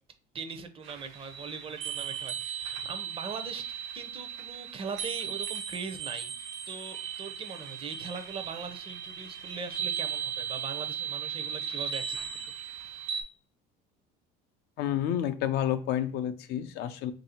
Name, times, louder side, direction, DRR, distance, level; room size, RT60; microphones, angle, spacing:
voice 1, 0.3-12.2 12.6-13.1, right 5 dB, 30° right, 8 dB, 0.6 m, -41 dB
sound 1, 0.8-13.2, right 8 dB, 80° right, 0.8 m, -37 dB
voice 2, 14.8-17.1, left 11 dB, 55° left, 10 dB, 0.4 m, -30 dB
3.1 x 2.6 x 4.3 m, 0.39 s
cardioid pair, 140°, 20 cm